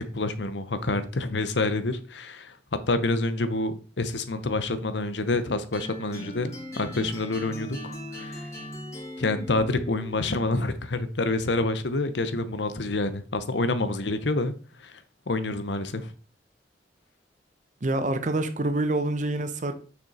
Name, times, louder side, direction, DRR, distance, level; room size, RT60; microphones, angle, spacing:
voice 1, 0.0-2.6 2.9-8.5 9.2-14.5 14.8-15.0 15.3-16.1, left 2 dB, 80° left, 0.9 m, -28 dB
sound 1, 5.7-10.8, left 1 dB, 15° left, 2.6 m, -39 dB
voice 2, 17.8-19.7, right 2 dB, 45° right, 0.8 m, -26 dB
6.3 x 6.1 x 4.2 m
head